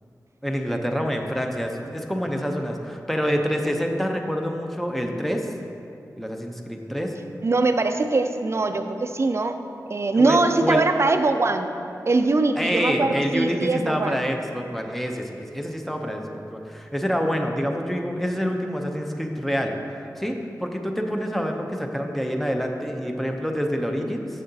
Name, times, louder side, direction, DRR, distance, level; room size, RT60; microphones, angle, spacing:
voice 1, 0.4-5.5 6.2-7.1 10.1-10.8 12.6-19.7 20.2-24.3, equal, 5° left, 3 dB, 0.6 m, -27 dB
voice 2, 7.4-9.5 9.9-11.7 12.1-14.2, right 3 dB, 45° right, 7 dB, 0.4 m, -22 dB
6.8 x 6.3 x 2.7 m, 2.6 s
cardioid pair, 55°, 7 cm